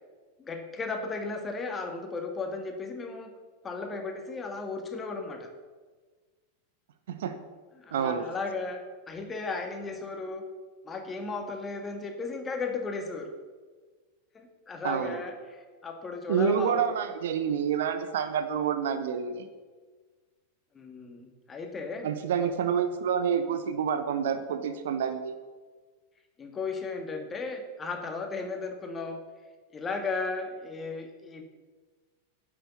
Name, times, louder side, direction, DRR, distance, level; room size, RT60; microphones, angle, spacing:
voice 1, 0.4-3.3 3.6-5.5 7.8-8.8 9.1-10.4 10.8-13.3 14.3-16.8 20.7-22.1 26.4-29.2 29.7-31.4, left 4 dB, 20° left, 4 dB, 1.7 m, -35 dB
voice 2, 7.9-8.3 14.8-15.2 16.3-19.5 22.0-25.3, right 7 dB, 60° right, 9 dB, 0.9 m, -28 dB
10.5 x 7.4 x 6.9 m, 1.4 s
figure-of-eight pair, 90°, 0 cm